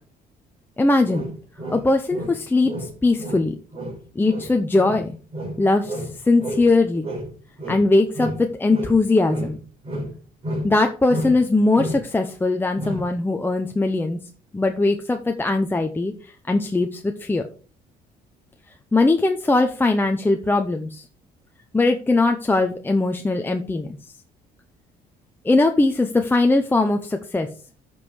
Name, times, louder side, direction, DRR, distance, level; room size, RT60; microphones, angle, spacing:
voice 1, 0.8-1.3 1.7-3.6 4.2-5.2 5.6-7.1 7.7-9.6 10.6-14.2 14.5-17.5 18.9-21.0 21.7-24.0 25.4-27.5, left 2 dB, 10° left, 5 dB, 0.8 m, -20 dB
sound 1, 1.0-2.4 2.6-6.7 7.0-9.0 9.3-10.8 11.1-11.5 11.8-12.1 12.8-13.1, equal, 35° right, 4.6 m, -31 dB
8.2 x 5.5 x 6.3 m, 0.39 s
cardioid pair, 110°, 17 cm